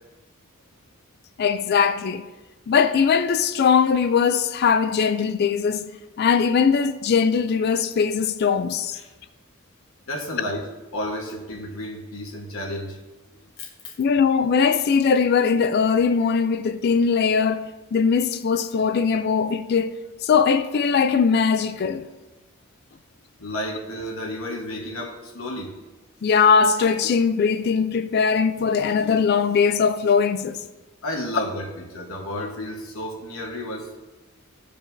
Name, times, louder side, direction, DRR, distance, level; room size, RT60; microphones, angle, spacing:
voice 1, 1.4-2.2 2.7-5.9 6.2-9.0 14.0-19.9 20.2-22.1 26.2-30.6, left 6 dB, 50° left, 0.3 m, -20 dB
voice 2, 10.1-13.0 13.6-13.9 23.4-25.7 31.0-33.9, left 1 dB, 75° left, 1.3 m, -32 dB
14.5 x 5.0 x 2.6 m
head